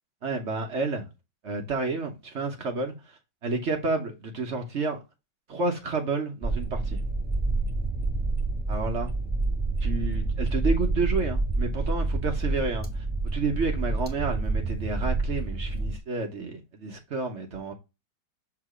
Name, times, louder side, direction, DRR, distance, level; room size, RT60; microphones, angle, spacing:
voice 1, 0.2-1.1 1.4-2.9 3.4-5.0 5.5-7.0 8.7-9.1 9.8-13.0 13.3-17.7, right 3 dB, 55° right, 0.7 m, -30 dB
sound 1, 6.4-16.0, right 3 dB, 5° right, 0.9 m, -28 dB
7.3 x 2.9 x 4.9 m
omnidirectional pair, 2.2 m